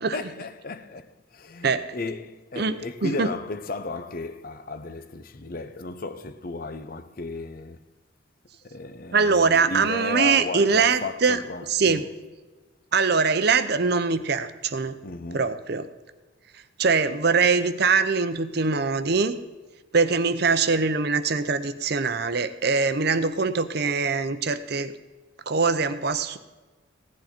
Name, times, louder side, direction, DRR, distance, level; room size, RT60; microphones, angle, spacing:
voice 1, 0.1-7.8 8.6-12.1 15.0-15.5, left 3 dB, 45° left, 0.6 m, -34 dB
voice 2, 9.1-11.4 11.7-12.0 12.9-15.0 15.3-15.9 16.8-19.4 19.9-24.9 25.5-26.4, right 4 dB, 50° right, 0.6 m, -22 dB
16.5 x 10.5 x 4.3 m
head